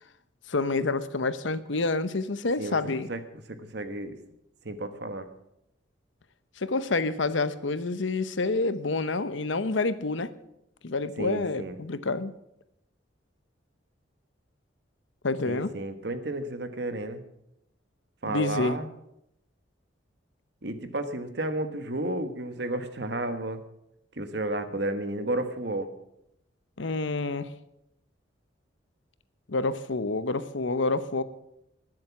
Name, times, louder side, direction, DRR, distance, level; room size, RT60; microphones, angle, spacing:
voice 1, 0.5-3.1 6.6-10.3 10.8-12.3 15.2-15.7 18.3-18.8 26.8-27.5 29.5-31.2, left 3 dB, 80° left, 13 dB, 0.9 m, -28 dB
voice 2, 3.1-4.2 4.6-5.3 11.2-11.8 15.4-17.2 18.2-18.9 20.6-23.6 24.2-25.9, right 1 dB, 60° right, 9 dB, 1.4 m, -32 dB
20.0 x 7.7 x 6.0 m, 0.81 s
head